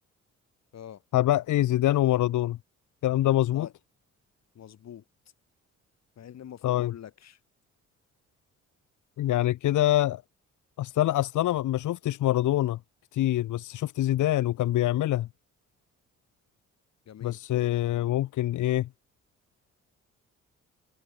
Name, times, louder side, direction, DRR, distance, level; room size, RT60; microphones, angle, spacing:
voice 1, 1.1-2.6 3.0-3.7 6.6-6.9 9.2-10.2 10.8-12.8 13.1-15.3 17.2-18.9, left 14 dB, 80° left, 1.9 m, -25 dB
voice 2, 4.5-5.0 6.2-7.4 17.1-17.4, left 10 dB, 60° left, 3.0 m, -44 dB
cardioid pair, 90°, 30 cm